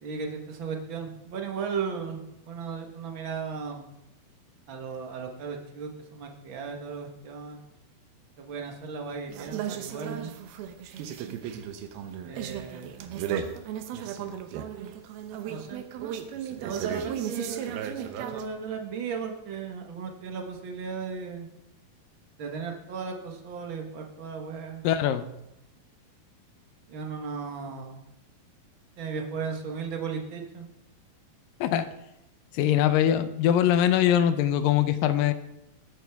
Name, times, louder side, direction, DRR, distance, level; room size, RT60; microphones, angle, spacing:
voice 1, 0.0-4.0 4.7-7.7 8.4-10.4 12.2-13.1 15.4-15.8 16.6-21.5 22.4-24.8 26.9-28.0 29.0-30.7, right 5 dB, 60° right, 3 dB, 1.2 m, -36 dB
sound 1, 9.3-18.5, right 9 dB, 85° right, 2.8 m, -35 dB
voice 2, 24.8-25.2 31.6-31.9 32.5-35.3, left 10 dB, 75° left, 11 dB, 2.3 m, -22 dB
20.5 x 10.0 x 3.5 m, 0.86 s
omnidirectional pair, 4.3 m